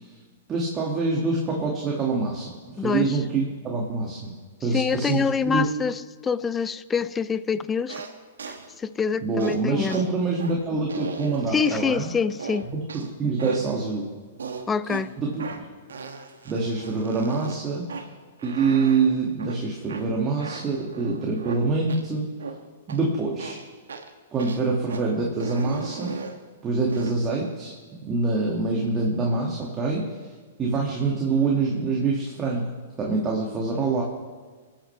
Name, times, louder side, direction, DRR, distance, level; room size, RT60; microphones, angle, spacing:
voice 1, 0.5-4.3 4.6-5.7 9.2-12.1 12.7-14.1 15.2-15.4 16.4-17.9 18.4-22.3 22.9-23.6 24.3-26.1 26.6-27.7 28.0-30.1 30.6-32.7 33.0-34.0, right 3 dB, 25° right, -2 dB, 2.1 m, -25 dB
voice 2, 2.8-3.1 4.6-8.0 8.8-10.0 11.5-12.7 14.7-15.1, left 6 dB, 15° left, 16 dB, 0.5 m, -25 dB
sound 1, 7.9-8.1 8.4-8.7 9.4-9.6 9.9-10.0 10.4-10.5 10.9-12.0 12.4-13.1 13.4-13.7 14.4-15.0 15.4-15.6 15.9-17.6 17.9-18.1 18.4-19.0 19.4-19.6 19.9-20.0 20.4-21.6 21.9-22.0 22.4-22.5 22.9-23.0 23.4-23.6 23.9-24.1 24.4-24.6 24.9-25.0 25.4-26.4 26.9-27.1, right 5 dB, 75° right, 1.4 m, -36 dB
26.0 x 8.9 x 3.4 m, 1.5 s
hypercardioid pair, 110°, 0 cm